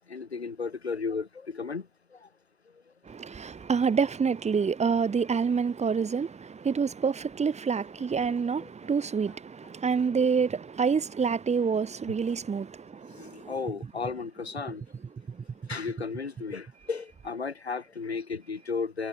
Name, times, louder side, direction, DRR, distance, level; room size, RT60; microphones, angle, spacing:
voice 1, 0.1-1.3 1.5-1.8 8.2-8.3 13.2-14.8 15.7-19.1, left 5 dB, 80° left, 6.0 m, -34 dB
voice 2, 3.1-12.7 13.0-13.5, right 6 dB, 20° right, 4.1 m, -27 dB
figure-of-eight pair, 75°, 31 cm